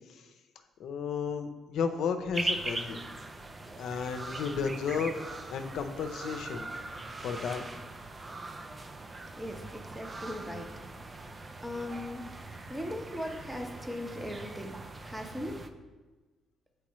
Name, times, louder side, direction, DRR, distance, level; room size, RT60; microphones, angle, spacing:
voice 1, 0.8-3.0 3.8-5.2 5.5-6.7 7.2-7.7, left 6 dB, 75° left, 7 dB, 0.6 m, -33 dB
sound 1, 2.3-15.7, right 2 dB, 25° right, 0.5 m, -41 dB
voice 2, 9.3-10.7 11.6-12.3 12.7-14.8 15.0-15.6, left 1 dB, 10° right, 4 dB, 0.9 m, -38 dB
8.4 x 4.6 x 3.1 m, 1.3 s
cardioid pair, 90°, 0 cm